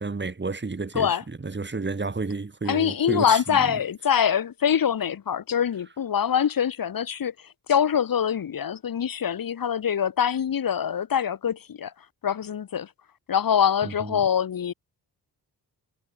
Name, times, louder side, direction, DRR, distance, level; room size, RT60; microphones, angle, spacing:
voice 1, 0.0-1.1 1.4-3.8 13.8-14.2, right 3 dB, 30° right, 7.7 m, -31 dB
voice 2, 2.7-11.9 12.2-12.9 13.3-14.7, left 8 dB, 60° left, 2.4 m, -24 dB
cardioid pair, 110°, 39 cm